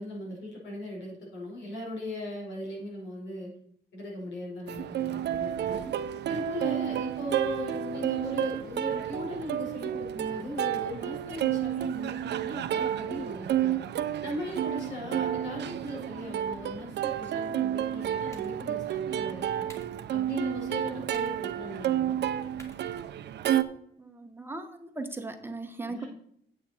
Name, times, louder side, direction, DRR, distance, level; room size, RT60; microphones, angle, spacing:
voice 1, 0.0-3.5 3.9-5.9 6.3-13.8 14.2-19.7 20.1-22.2 25.8-26.1, left 1 dB, 85° left, -3 dB, 5.0 m, -38 dB
Plucked string instrument, 4.7-23.6, right 11 dB, 70° right, 0.6 m, -31 dB
sound 1, 17.8-23.8, equal, 15° left, 2.4 m, -58 dB
voice 2, 24.0-26.0, right 2 dB, 10° right, 5 dB, 1.0 m, -38 dB
9.3 x 8.3 x 4.3 m, 0.68 s
cardioid pair, 130°, 18 cm